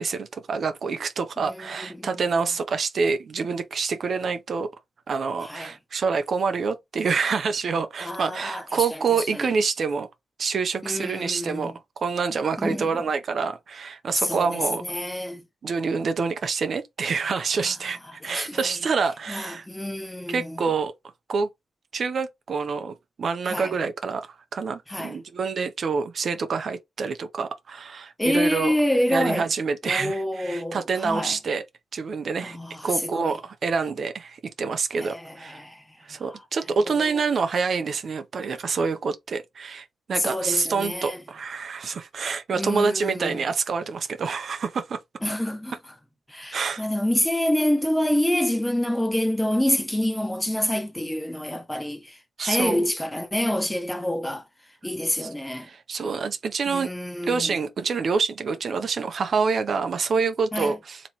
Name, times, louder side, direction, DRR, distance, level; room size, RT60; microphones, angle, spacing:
voice 1, 0.0-4.7 5.1-10.1 10.4-14.8 15.6-19.7 20.3-20.9 21.3-21.5 21.9-28.8 29.1-31.6 31.9-32.6 32.8-35.6 36.1-45.0 46.5-46.8 52.4-52.8 55.2-56.9 57.3-61.0, right 5 dB, 60° right, 0.6 m, -27 dB
voice 2, 1.4-2.1 5.4-5.7 8.0-8.9 9.2-9.5 10.8-11.7 12.6-12.9 14.1-15.4 17.6-17.7 18.1-18.6 19.3-20.6 23.5-23.7 24.9-25.2 28.2-29.5 29.8-31.4 32.4-33.4 34.9-36.4 36.9-37.1 40.1-41.2 42.5-43.4 45.2-45.8 46.3-54.4 54.8-55.7 56.7-57.6 60.5-60.8, left 1 dB, 10° left, 1.1 m, -27 dB
3.0 x 2.9 x 4.0 m
cardioid pair, 65°, 0 cm